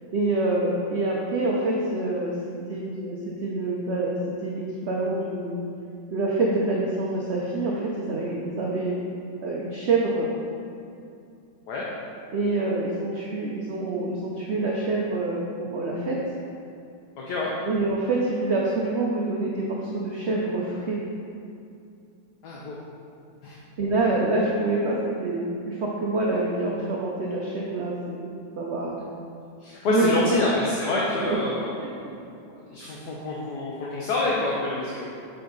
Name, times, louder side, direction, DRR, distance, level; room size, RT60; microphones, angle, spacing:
voice 1, 0.1-5.6 6.1-9.0 9.4-10.3 12.3-16.2 17.6-21.0 23.8-29.0 29.9-30.4 31.2-31.4, right 2 dB, 60° right, -3 dB, 0.7 m, -26 dB
voice 2, 22.4-22.8 23.4-23.5 29.6-31.7 32.5-35.1, left 2 dB, 65° left, -4 dB, 1.4 m, -27 dB
6.8 x 6.4 x 4.0 m, 2.5 s
omnidirectional pair, 2.0 m